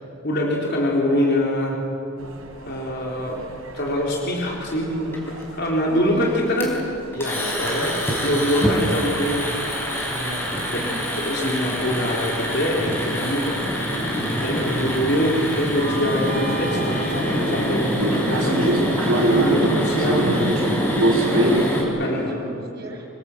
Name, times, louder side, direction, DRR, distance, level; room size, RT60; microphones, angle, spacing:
voice 1, 0.2-1.8 2.6-3.4 3.7-6.7 7.1-8.0 8.2-9.5 10.1-10.4 10.7-10.8 11.2-13.6 14.4-20.5 22.0-22.3, left 1 dB, 50° left, -2 dB, 4.0 m, -24 dB
sound 1, 2.2-21.6, right 1 dB, 80° right, 3.9 m, -29 dB
sound 2, 5.1-5.4 6.6-6.8 7.1-21.8, equal, 10° left, 4.6 m, -25 dB
voice 2, 5.9-6.3 10.5-11.1 14.5-14.8 20.9-23.1, right 1 dB, 50° right, -1 dB, 6.0 m, -37 dB
26.0 x 20.5 x 8.1 m, 2.6 s
head